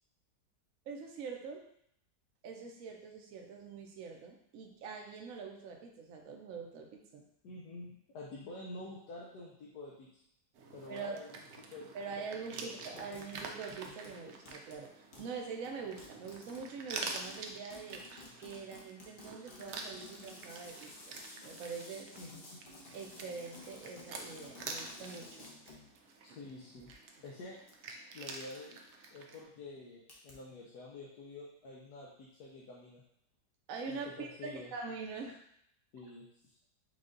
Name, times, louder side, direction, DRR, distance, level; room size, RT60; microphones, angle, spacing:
voice 1, 0.9-1.6 2.4-7.2 10.9-11.2 11.9-18.0 18.4-21.2 21.4-22.1 22.9-25.5 33.7-35.4, right 5 dB, 60° right, 1 dB, 1.0 m, -44 dB
voice 2, 7.4-10.2 10.7-11.9 12.2-12.3 13.0-13.1 22.2-22.4 26.2-26.9 27.2-27.6 28.1-28.8 29.1-33.0 33.9-34.7 35.9-36.5, left 2 dB, 75° left, -5 dB, 1.3 m, -48 dB
sound 1, 10.5-29.4, right 4 dB, 85° right, 0.6 m, -48 dB
sound 2, 12.9-14.2 14.5-14.9 15.1-15.4 16.0-25.9 26.6-26.9 27.7-27.8 28.5-28.8 29.0-29.1 30.1-30.3, left 2 dB, 40° left, 0.8 m, -53 dB
5.1 x 2.4 x 3.8 m, 0.70 s
omnidirectional pair, 1.8 m